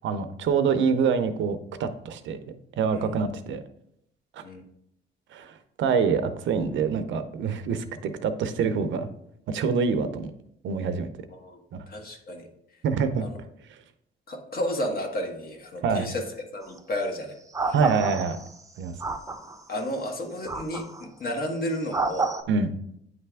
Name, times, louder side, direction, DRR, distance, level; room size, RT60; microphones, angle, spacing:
voice 1, 0.0-2.4 2.8-3.6 4.3-4.4 5.3-9.1 9.5-10.3 10.6-11.1 11.7-11.8 12.8-13.2 13.7-13.8 15.8-16.1 17.7-18.4 18.8-18.9 22.5-22.7, right 5 dB, 70° right, 10 dB, 0.6 m, -26 dB
voice 2, 2.8-3.3 4.4-4.6 11.4-11.6 11.9-12.5 13.2-13.4 14.3-16.2 16.5-17.3 17.6-17.8 19.7-22.3, left 1 dB, 50° left, 2 dB, 1.4 m, -32 dB
sound 1, 16.6-16.8 17.5-18.6 19.0-19.6 20.5-21.0 21.9-22.4, right 3 dB, 15° right, 0.6 m, -29 dB
8.9 x 3.4 x 3.4 m, 0.74 s
cardioid pair, 90°, 20 cm